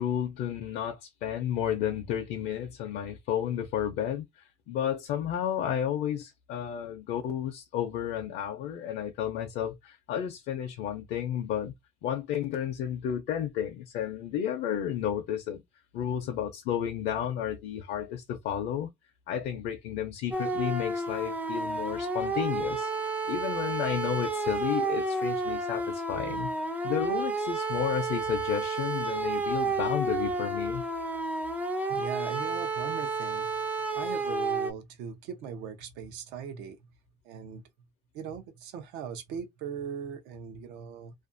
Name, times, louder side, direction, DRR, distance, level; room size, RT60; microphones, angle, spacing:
voice 1, 0.0-11.7 12.0-15.6 15.9-18.9 19.3-22.9 23.3-26.5 26.8-30.8, left 9 dB, 70° left, 0.5 m, -32 dB
sound 1, 20.3-34.7, right 3 dB, 10° right, 0.4 m, -31 dB
voice 2, 31.9-33.5 33.9-36.8 37.2-37.6 38.1-41.1, right 7 dB, 90° right, 0.6 m, -39 dB
2.5 x 2.2 x 2.4 m
cardioid pair, 140°, 17 cm